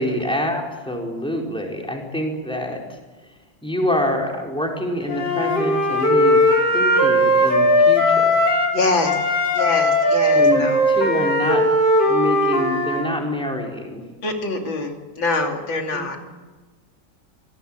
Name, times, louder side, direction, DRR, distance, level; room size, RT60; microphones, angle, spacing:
voice 1, 0.0-3.0 3.6-6.4 6.7-8.4 10.3-11.6 12.0-14.0 15.9-16.2, left 1 dB, ahead, 0 dB, 4.4 m, -26 dB
Wind instrument woodwind instrument, 5.1-8.8 9.0-13.0, left 1 dB, 65° left, 5.6 m, -18 dB
voice 2, 8.7-9.3 9.5-10.8 14.2-16.2, left 3 dB, 85° left, 2 dB, 3.6 m, -24 dB
26.5 x 18.0 x 9.0 m, 1.3 s
omnidirectional pair, 2.1 m